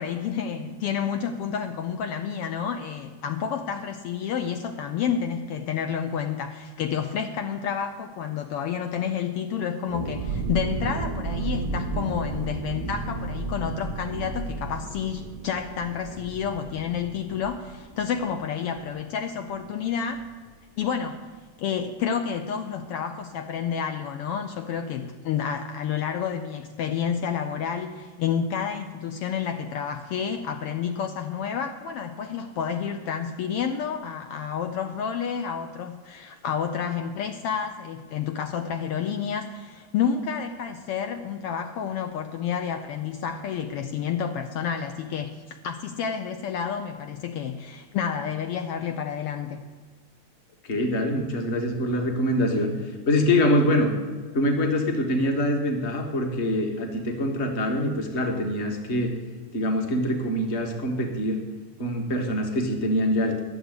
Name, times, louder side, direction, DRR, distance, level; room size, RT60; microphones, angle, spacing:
voice 1, 0.0-20.2 20.8-21.2 21.6-49.6, left 7 dB, 90° left, 6 dB, 1.2 m, -30 dB
sound 1, 9.9-19.3 19.5-19.6 20.0-20.3, right 3 dB, 85° right, 0.7 m, -33 dB
voice 2, 50.6-52.7 53.0-53.9 54.3-59.1 59.5-61.4 61.8-63.4, left 1 dB, 35° left, 4 dB, 1.1 m, -24 dB
11.0 x 7.1 x 9.4 m, 1.5 s
omnidirectional pair, 3.5 m